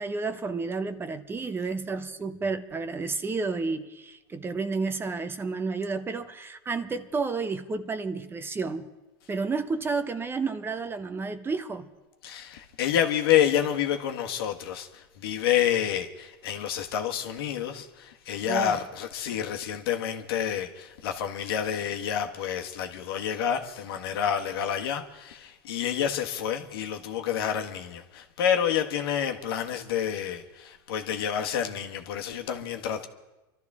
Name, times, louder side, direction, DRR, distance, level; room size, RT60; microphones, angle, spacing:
voice 1, 0.0-8.9 9.3-11.9 18.5-18.7, right 4 dB, 20° right, 0.8 m, -31 dB
voice 2, 12.2-33.1, left 9 dB, 80° left, 1.5 m, -28 dB
24.5 x 13.0 x 3.6 m
supercardioid pair, 120°, 12 cm